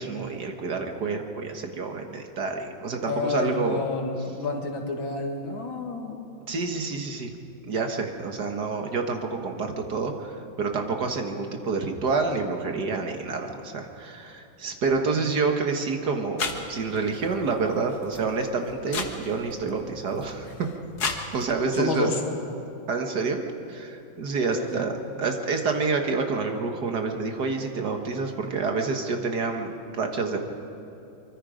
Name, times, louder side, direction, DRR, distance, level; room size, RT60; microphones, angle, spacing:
voice 1, 0.0-3.8 6.5-7.4 7.7-20.5 21.3-22.1 22.9-30.4, right 4 dB, 55° right, 4 dB, 2.0 m, -28 dB
voice 2, 3.1-6.3 21.7-22.2 24.5-24.9, left 3 dB, 75° left, 2 dB, 2.8 m, -29 dB
sound 1, 16.4-21.8, left 4 dB, 55° left, 1.9 m, -36 dB
24.5 x 24.0 x 5.1 m, 2.8 s
omnidirectional pair, 2.2 m